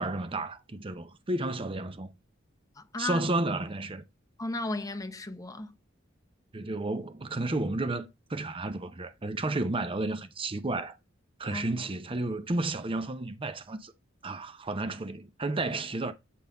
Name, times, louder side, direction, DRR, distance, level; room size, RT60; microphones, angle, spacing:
voice 1, 0.0-2.1 3.0-4.0 6.5-10.9 11.4-13.9 14.2-16.1, right 2 dB, 30° right, 0.6 m, -32 dB
voice 2, 2.8-3.3 4.4-5.7 11.5-11.7, left 2 dB, 20° left, 0.7 m, -35 dB
8.5 x 3.9 x 3.9 m
head